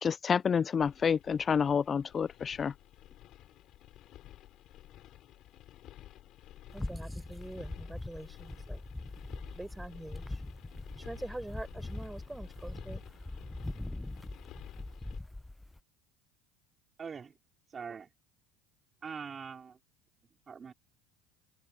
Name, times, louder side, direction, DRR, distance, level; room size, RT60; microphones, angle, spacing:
voice 1, 0.0-2.7, left 6 dB, 30° left, 0.3 m, -28 dB
sound 1, 0.8-15.2, left 13 dB, 55° left, 4.1 m, -53 dB
sound 2, 6.7-15.8, left 2 dB, 10° left, 0.9 m, -42 dB
voice 2, 6.7-8.8 9.5-10.4 11.0-13.0, right 1 dB, 10° right, 5.6 m, -44 dB
voice 3, 17.0-17.3 17.7-18.1 19.0-19.8 20.5-20.7, right 6 dB, 30° right, 4.1 m, -42 dB
open air
supercardioid pair, 90°, 0 cm